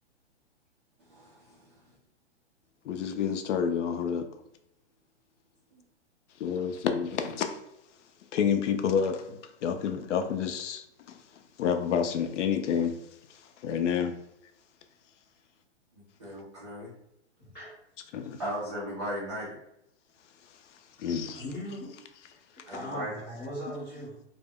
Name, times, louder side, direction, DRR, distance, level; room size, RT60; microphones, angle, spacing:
voice 1, 1.1-1.7 15.9-16.9 18.4-19.6 22.7-23.1, equal, 25° right, -9 dB, 0.4 m, -37 dB
voice 2, 2.8-4.3 6.4-7.6 8.3-11.2 11.6-13.0 13.3-14.2 18.1-18.4 21.0-21.4, left 7 dB, 80° left, 6 dB, 0.5 m, -29 dB
voice 3, 17.4-17.8 21.3-22.0 22.5-24.2, equal, 20° left, -12 dB, 0.9 m, -39 dB
2.1 x 2.0 x 3.5 m, 0.80 s
hypercardioid pair, 165°, 35 cm